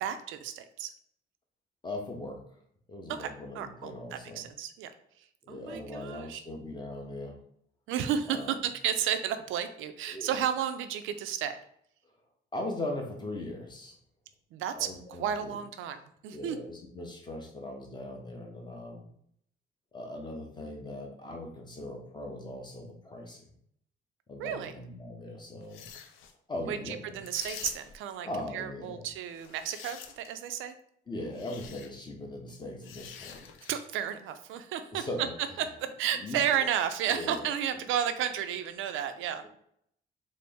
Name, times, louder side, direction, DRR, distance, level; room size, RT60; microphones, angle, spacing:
voice 1, 0.0-0.9 3.1-4.9 5.5-6.4 7.9-11.6 14.5-16.6 24.4-24.7 26.7-28.3 28.5-30.7 33.7-35.0 35.6-39.5, right 9 dB, 85° right, 10 dB, 0.4 m, -32 dB
voice 2, 1.8-2.4 2.9-4.5 5.4-7.4 8.3-8.6 10.1-10.4 12.5-14.0 14.7-15.6 16.3-19.1 19.9-23.5 24.3-25.9 26.5-27.2 28.2-29.1 31.1-33.5 34.9-35.3 36.1-36.4 37.1-37.5 37.7-37.8 39.4-39.5, left 1 dB, 20° left, 2 dB, 0.9 m, -39 dB
sound 1, 25.6-26.3 27.2-28.1 29.3-30.4 31.3-31.9 32.8-33.9, left 8 dB, 90° left, 0.4 m, -45 dB
4.0 x 2.0 x 3.4 m, 0.69 s
cardioid pair, 90°, 20 cm